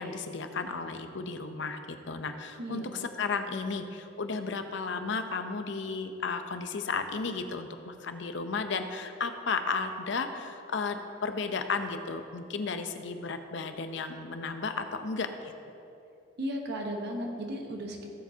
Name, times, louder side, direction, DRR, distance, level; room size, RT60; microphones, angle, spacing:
voice 1, 0.0-15.5, left 4 dB, 70° left, 7 dB, 0.7 m, -34 dB
voice 2, 2.6-3.1 16.4-18.1, equal, 60° right, 1 dB, 1.2 m, -35 dB
16.5 x 7.4 x 2.8 m, 2.7 s
head